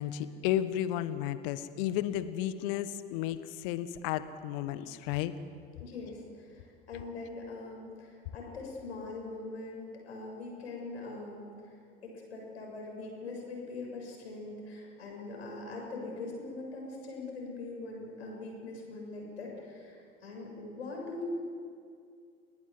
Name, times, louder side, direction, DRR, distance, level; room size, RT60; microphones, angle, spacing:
voice 1, 0.0-5.3, left 12 dB, 65° left, 12 dB, 1.4 m, -33 dB
voice 2, 5.8-11.7 12.0-21.3, left 3 dB, 80° left, -1 dB, 7.1 m, -42 dB
29.0 x 19.0 x 7.9 m, 2.3 s
figure-of-eight pair, 65°, 31 cm